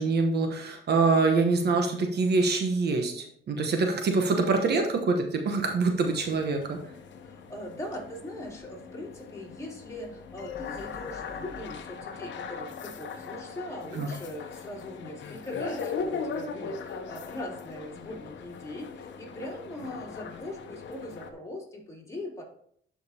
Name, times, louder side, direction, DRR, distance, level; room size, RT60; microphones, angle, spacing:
voice 1, 0.0-6.8 13.9-14.1, right 3 dB, 55° right, 4 dB, 1.1 m, -25 dB
sound 1, 6.0-21.3, left 5 dB, 65° left, 0.9 m, -39 dB
voice 2, 7.2-22.4, left 1 dB, 15° left, -3 dB, 3.2 m, -40 dB
11.5 x 5.2 x 2.8 m, 0.66 s
cardioid pair, 90°, 20 cm